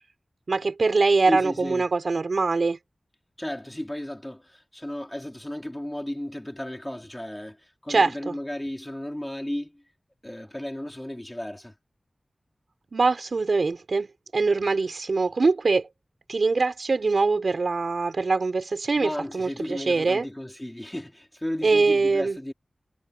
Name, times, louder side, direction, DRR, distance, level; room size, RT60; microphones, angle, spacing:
voice 1, 0.5-2.8 7.9-8.3 12.9-15.9 16.3-20.3 21.6-22.4, right 3 dB, 80° right, 5.1 m, -23 dB
voice 2, 1.3-1.9 3.4-9.8 10.2-11.7 18.9-22.5, left 1 dB, 15° left, 4.0 m, -34 dB
wide cardioid pair, 85°, 0 cm